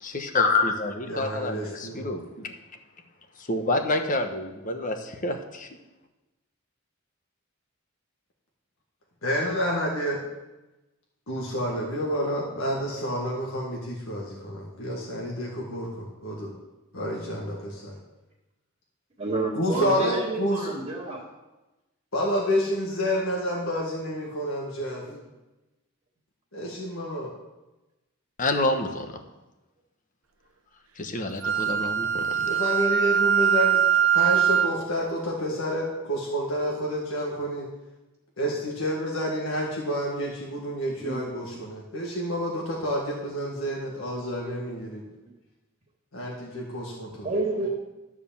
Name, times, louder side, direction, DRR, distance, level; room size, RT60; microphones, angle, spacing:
voice 1, 0.0-2.2 3.5-5.7 28.4-29.1 31.0-32.5, left 2 dB, 40° left, 6 dB, 1.0 m, -27 dB
voice 2, 1.1-2.1 2.4-2.5 9.2-10.2 11.3-16.5 16.9-18.0 19.5-20.7 22.1-25.1 26.5-27.3 32.4-33.8 34.1-37.7 38.4-45.0 46.1-47.3 47.6-47.7, equal, 75° left, -3 dB, 1.7 m, -29 dB
voice 3, 19.2-21.2 25.0-25.2 41.0-41.2 47.2-47.7, right 2 dB, 30° right, -8 dB, 1.8 m, -29 dB
Wind instrument woodwind instrument, 31.4-34.8, right 8 dB, 90° right, 0.7 m, -22 dB
13.0 x 4.9 x 7.0 m, 1.1 s
head